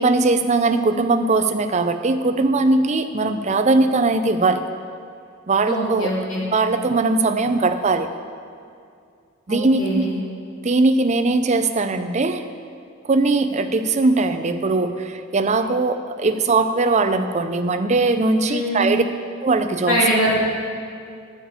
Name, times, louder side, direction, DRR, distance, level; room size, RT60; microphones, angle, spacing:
voice 1, 0.0-4.6 5.5-6.1 6.5-8.1 9.5-10.0 10.6-12.4 13.1-19.0 19.4-20.0, right 3 dB, 30° right, 8 dB, 0.5 m, -20 dB
voice 2, 5.7-6.5 9.5-10.1 18.5-18.9 19.8-20.4, equal, 65° left, -6 dB, 3.3 m, -22 dB
11.0 x 5.3 x 8.6 m, 2.3 s
head